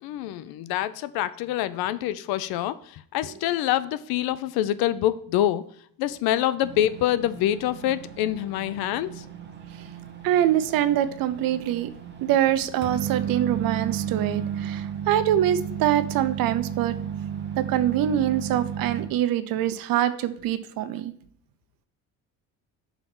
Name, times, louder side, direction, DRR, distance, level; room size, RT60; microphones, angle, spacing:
voice 1, 0.0-5.6 6.0-9.2, left 12 dB, 85° left, 16 dB, 0.5 m, -26 dB
sound 1, 6.6-19.1, right 8 dB, 30° right, 0.9 m, -34 dB
voice 2, 10.2-11.9 12.2-16.9 17.6-21.1, right 11 dB, 70° right, 12 dB, 0.6 m, -24 dB
5.7 x 3.9 x 6.0 m, 0.63 s
cardioid pair, 150°, 36 cm